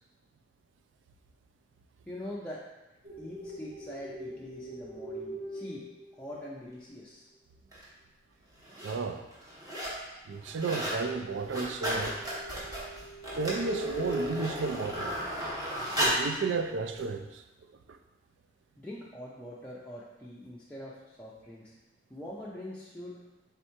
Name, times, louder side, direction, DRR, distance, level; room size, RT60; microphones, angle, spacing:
voice 1, 2.1-2.6 3.2-5.8 6.1-7.3 18.8-21.7 22.1-23.1, left 1 dB, 5° left, -8 dB, 0.4 m, -43 dB
sound 1, 3.0-6.8 11.2-15.6, equal, 40° right, 1.2 m, -41 dB
sound 2, 7.7-7.8 8.5-9.0 9.3-10.0 10.3-11.0 11.3-16.3 17.0-17.1, equal, 20° right, 0.9 m, -34 dB
voice 2, 8.8-9.3 10.3-12.2 13.3-15.2 16.0-17.4 17.9-18.0, right 4 dB, 85° right, 7 dB, 0.3 m, -33 dB
3.6 x 2.9 x 4.4 m, 1.0 s
head